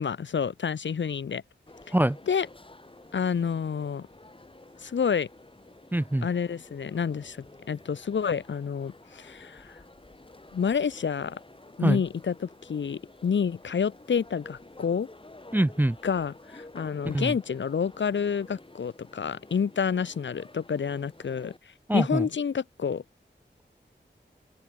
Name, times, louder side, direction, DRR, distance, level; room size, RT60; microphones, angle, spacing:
voice 1, 0.0-1.4 2.3-2.5 3.1-4.1 4.8-5.3 6.2-7.4 7.7-9.8 10.5-11.4 11.8-15.1 16.0-21.5 21.9-23.0, left 6 dB, 80° left, 0.7 m, -29 dB
sound 1, 1.7-21.6, left 2 dB, 30° left, 3.4 m, -51 dB
voice 2, 5.9-6.3 11.8-12.0 15.5-16.0 17.1-17.3 21.9-22.3, right 1 dB, 10° right, 0.4 m, -24 dB
open air
wide cardioid pair, 75°, 19 cm